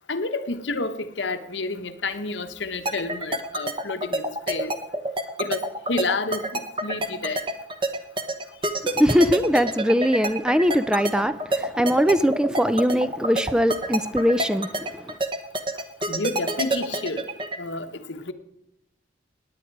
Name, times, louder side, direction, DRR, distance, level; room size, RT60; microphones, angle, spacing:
voice 1, 0.1-4.7 5.4-7.4 16.1-17.2 17.6-18.3, left 3 dB, 80° left, 1.1 m, -30 dB
sound 1, 2.9-17.6, right 1 dB, 25° right, 1.1 m, -26 dB
voice 2, 8.9-14.7, equal, 5° right, 0.4 m, -21 dB
17.0 x 9.9 x 4.7 m
head